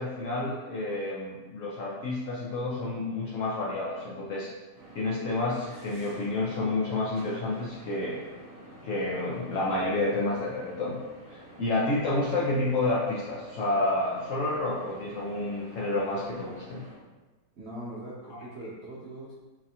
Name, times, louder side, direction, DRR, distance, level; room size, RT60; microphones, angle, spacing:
voice 1, 0.0-4.5 4.9-8.2 8.8-11.0 11.3-16.8 18.3-18.4, left 2 dB, 75° left, -5 dB, 0.7 m, -29 dB
sound 1, 4.7-17.0, right 1 dB, 60° right, 1.2 m, -49 dB
voice 2, 17.6-19.4, right 1 dB, 90° right, -6 dB, 0.5 m, -41 dB
4.0 x 2.3 x 2.7 m, 1.2 s
omnidirectional pair, 1.9 m